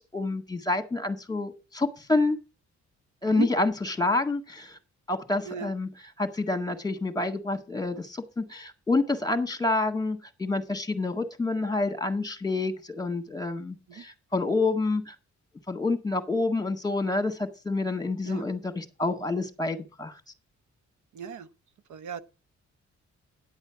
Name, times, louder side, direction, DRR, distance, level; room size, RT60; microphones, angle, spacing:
voice 1, 0.1-2.4 3.2-4.8 5.1-15.2 15.7-20.2, left 3 dB, 15° left, 1.8 m, -28 dB
voice 2, 21.1-21.5 21.9-22.2, right 6 dB, 85° right, 0.9 m, -34 dB
10.0 x 8.0 x 5.9 m
cardioid pair, 100°, 29 cm